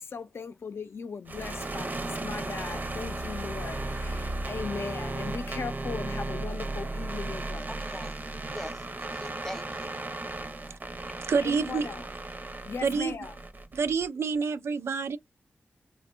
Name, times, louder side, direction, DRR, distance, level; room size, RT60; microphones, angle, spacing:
voice 1, 0.0-7.7 11.4-12.1 12.7-13.3, left 5 dB, 70° left, 0.5 m, -38 dB
sound 1, 1.3-14.1, right 2 dB, 45° right, 0.7 m, -35 dB
voice 2, 7.9-10.7, left 1 dB, 10° left, 0.5 m, -44 dB
voice 3, 11.3-11.9 12.8-13.2 13.7-15.2, right 5 dB, 85° right, 0.4 m, -27 dB
3.4 x 2.2 x 2.5 m
cardioid pair, 65°, 4 cm